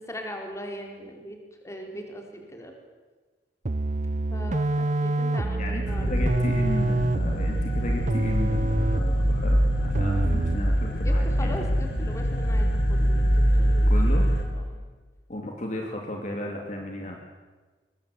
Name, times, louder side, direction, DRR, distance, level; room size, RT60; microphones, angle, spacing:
voice 1, 0.1-1.4 1.6-2.7 4.3-6.1 11.0-13.9 14.2-14.6, equal, 15° left, 2 dB, 4.2 m, -39 dB
sound 1, 3.6-10.8, right 2 dB, 45° right, 0.7 m, -26 dB
voice 2, 5.6-11.5 13.9-14.3 15.3-17.2, left 1 dB, 45° left, 1 dB, 2.6 m, -34 dB
sound 2, 5.9-14.4, equal, 70° left, 4.2 m, -24 dB
23.0 x 20.0 x 8.3 m, 1.3 s
head